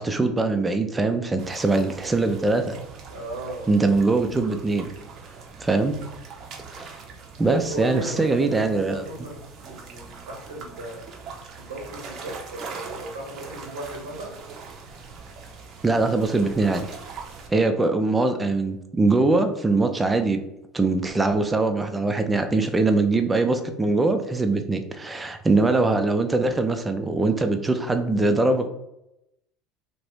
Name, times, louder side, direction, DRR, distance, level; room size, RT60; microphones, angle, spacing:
voice 1, 0.0-2.8 3.7-4.9 5.6-5.9 6.7-7.0 7.4-9.0 15.8-16.8 17.5-20.4 20.7-28.7, right 3 dB, 20° right, 7 dB, 0.5 m, -22 dB
sound 1, 1.4-17.5, right 5 dB, 55° right, 0.7 m, -42 dB
voice 2, 3.1-3.7 7.4-9.3 9.6-11.0 11.6-14.4 18.1-18.4, right 1 dB, 90° right, -2 dB, 1.1 m, -37 dB
2.7 x 2.5 x 3.3 m, 0.86 s
hypercardioid pair, 75°, 0 cm